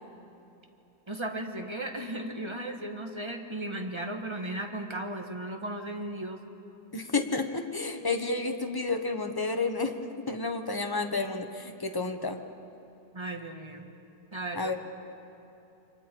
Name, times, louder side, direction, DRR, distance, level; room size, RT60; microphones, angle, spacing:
voice 1, 1.1-6.4 13.1-13.8 14.3-14.7, right 1 dB, 20° right, 4 dB, 1.4 m, -36 dB
voice 2, 6.9-9.9 10.3-12.4 14.5-14.8, left 3 dB, 15° left, 5 dB, 1.0 m, -30 dB
29.0 x 25.5 x 4.6 m, 2.8 s
omnidirectional pair, 1.7 m